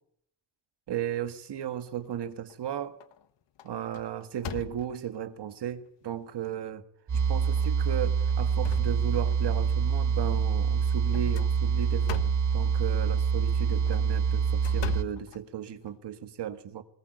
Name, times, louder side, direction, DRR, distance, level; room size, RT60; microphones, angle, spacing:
voice 1, 0.9-3.0 3.6-6.8 7.1-12.2 12.5-16.8, right 10 dB, 70° right, 1.7 m, -35 dB
sound 1, 2.0-2.6 3.0-3.3 3.6-5.2 5.9-6.0 6.4-6.5 7.4-7.7 8.1-9.6 11.1-12.6 13.7-16.0, left 10 dB, 80° left, 1.3 m, -41 dB
sound 2, 7.1-15.0, right 6 dB, 40° right, 1.5 m, -26 dB
21.0 x 20.0 x 8.0 m
wide cardioid pair, 150°, 43 cm